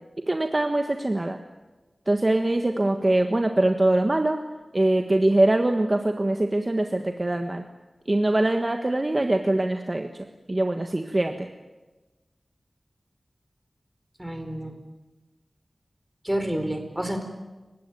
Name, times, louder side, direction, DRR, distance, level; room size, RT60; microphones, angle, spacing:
voice 1, 0.3-1.4 2.1-4.4 4.7-7.6 8.1-10.1 10.5-11.5, right 1 dB, 30° right, 5 dB, 1.5 m, -23 dB
voice 2, 14.2-14.7 16.2-17.2, right 1 dB, 5° right, 6 dB, 4.6 m, -29 dB
29.0 x 16.5 x 9.3 m, 1.2 s
wide cardioid pair, 80°, 0 cm